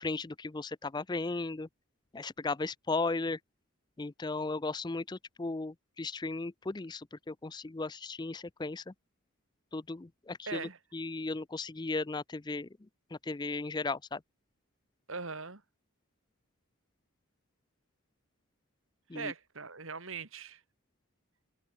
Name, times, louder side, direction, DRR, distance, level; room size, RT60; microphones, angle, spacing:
voice 1, 0.0-1.7 2.1-3.4 4.0-8.9 9.7-12.7 13.1-14.2 19.1-19.3, left 3 dB, 20° left, 0.4 m, -36 dB
voice 2, 10.5-10.8 15.1-15.6 19.1-20.6, right 4 dB, 65° right, 2.5 m, -40 dB
head